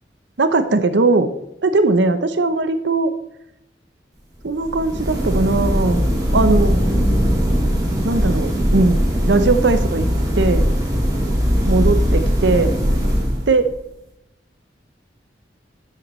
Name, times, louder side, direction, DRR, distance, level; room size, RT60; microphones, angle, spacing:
voice 1, 0.4-1.3 1.6-3.1 4.4-6.0 6.3-6.8 8.0-10.1 10.4-10.7 11.7-12.8 13.5-13.7, right 3 dB, 85° right, 10 dB, 0.8 m, -19 dB
sound 1, 4.6-13.7, equal, 20° right, 2.1 m, -19 dB
11.5 x 7.7 x 3.2 m, 0.81 s
head